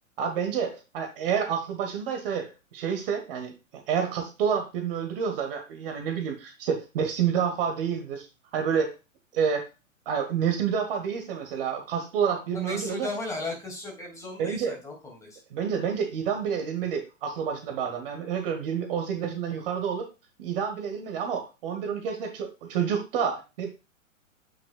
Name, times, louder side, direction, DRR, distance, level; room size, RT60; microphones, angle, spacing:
voice 1, 0.2-3.5 3.9-8.3 8.5-8.9 9.3-9.6 10.0-13.1 14.4-14.7 15.5-20.1 20.4-23.8, right 7 dB, 45° right, 5 dB, 1.4 m, -29 dB
voice 2, 12.5-15.4, left 2 dB, 10° left, 0 dB, 2.3 m, -36 dB
8.9 x 5.4 x 2.3 m, 0.29 s
figure-of-eight pair, 110°, 40 cm